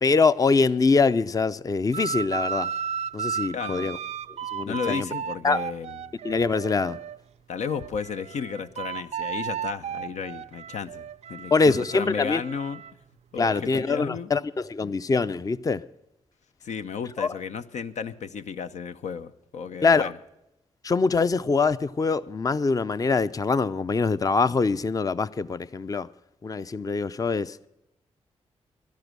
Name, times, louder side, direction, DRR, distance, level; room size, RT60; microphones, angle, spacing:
voice 1, 0.0-2.7 3.1-4.0 4.5-5.1 5.4-5.6 6.2-7.0 11.5-12.4 13.4-15.8 17.2-17.4 19.8-20.1 20.8-26.1 26.4-27.6, left 4 dB, 30° left, 0.5 m, -24 dB
sound 1, 1.9-7.2 7.6-12.9, right 7 dB, 70° right, 0.4 m, -34 dB
voice 2, 3.5-3.9 4.6-6.1 7.5-12.8 13.3-14.3 16.6-20.1, left 6 dB, 85° left, 0.7 m, -33 dB
13.0 x 12.0 x 6.1 m
cardioid pair, 65°, 12 cm